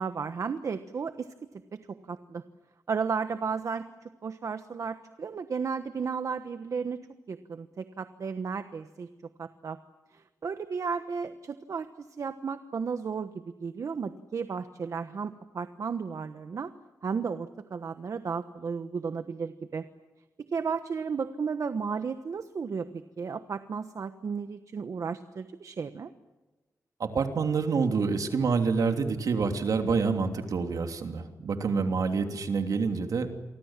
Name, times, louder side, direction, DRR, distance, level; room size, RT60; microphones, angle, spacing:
voice 1, 0.0-1.3 1.7-2.4 2.9-7.0 7.3-9.1 9.4-9.8 10.1-13.3 13.6-16.7 17.0-19.8 20.5-26.1, right 5 dB, 60° right, 10 dB, 1.2 m, -34 dB
voice 2, 27.0-33.3, right 5 dB, 75° right, 5 dB, 3.1 m, -27 dB
29.0 x 24.0 x 7.5 m, 1.2 s
wide cardioid pair, 120°, 6 cm